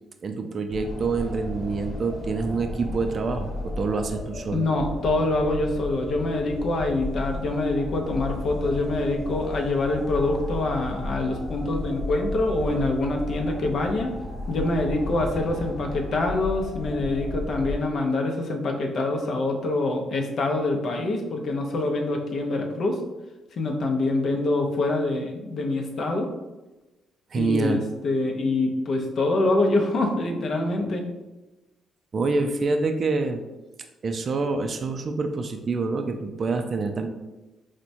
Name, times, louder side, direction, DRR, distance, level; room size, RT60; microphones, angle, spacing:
voice 1, 0.2-4.7 27.3-27.8 32.1-33.4 34.0-37.1, right 3 dB, 45° right, 6 dB, 0.3 m, -26 dB
sound 1, 0.7-17.8, left 2 dB, 15° left, 1.1 m, -34 dB
voice 2, 4.5-14.1 14.5-23.0 23.6-26.3 27.4-31.1, left 2 dB, 60° left, 2 dB, 0.5 m, -25 dB
4.3 x 2.1 x 2.6 m, 1.1 s
cardioid pair, 90°, 0 cm